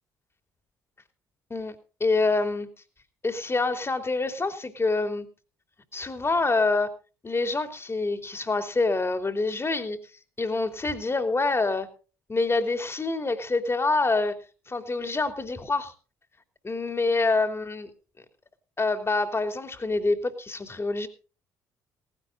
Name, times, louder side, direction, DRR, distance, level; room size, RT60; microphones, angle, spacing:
voice 1, 2.0-2.7 3.2-5.3 5.9-6.9 7.2-10.0 10.4-11.9 12.3-14.3 14.7-15.9 16.6-17.9 18.8-21.1, left 3 dB, 25° left, 8 dB, 2.9 m, -26 dB
18.5 x 16.5 x 2.6 m, 0.36 s
figure-of-eight pair, 50°, 10 cm